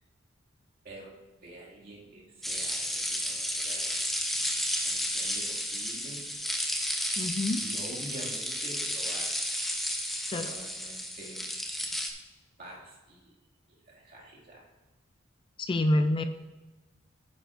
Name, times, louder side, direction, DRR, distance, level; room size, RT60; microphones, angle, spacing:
voice 1, 0.8-4.3 4.8-6.2 7.6-9.4 10.3-11.4 12.6-13.3 13.7-14.7 16.2-16.3, right 1 dB, 50° right, -4 dB, 2.3 m, -47 dB
sound 1, 2.4-12.1, equal, ahead, 0.8 m, -32 dB
voice 2, 7.2-7.6 10.3-10.5 15.6-16.2, left 1 dB, 25° left, 9 dB, 0.3 m, -27 dB
10.0 x 9.1 x 2.5 m, 1.1 s
head